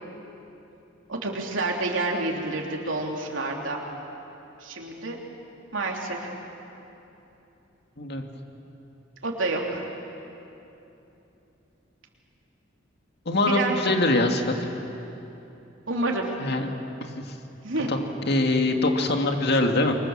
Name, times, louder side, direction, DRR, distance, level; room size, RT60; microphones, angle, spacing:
voice 1, 1.1-3.8 4.6-5.2 5.7-6.3 9.2-9.8 13.5-13.8 15.9-16.3 17.6-17.9, right 2 dB, 80° right, 0 dB, 3.3 m, -28 dB
voice 2, 13.3-14.6 16.4-16.7 17.0-17.3 17.9-19.9, left 2 dB, 60° left, 4 dB, 2.1 m, -23 dB
29.0 x 24.0 x 7.4 m, 3.0 s
head